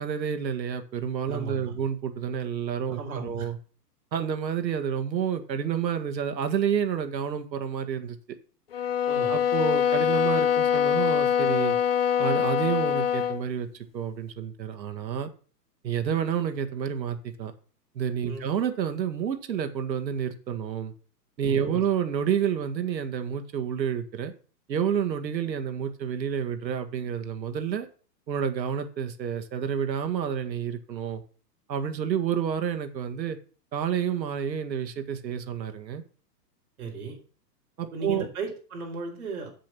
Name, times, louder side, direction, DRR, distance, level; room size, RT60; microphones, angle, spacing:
voice 1, 0.0-3.6 4.1-8.2 9.3-11.8 12.2-15.3 15.8-17.5 18.0-20.9 21.4-24.3 24.7-27.9 28.3-31.2 31.7-33.4 33.7-36.0 37.8-38.3, right 8 dB, 85° right, 8 dB, 1.8 m, -29 dB
voice 2, 1.3-1.8 2.9-3.5 9.1-9.3 18.2-18.5 21.4-21.8 36.8-37.2 37.9-39.5, right 4 dB, 60° right, 1 dB, 4.4 m, -35 dB
sound 1, 8.7-13.4, left 8 dB, 35° left, 0.7 m, -24 dB
7.5 x 7.0 x 6.0 m, 0.40 s
hypercardioid pair, 175°, 50 cm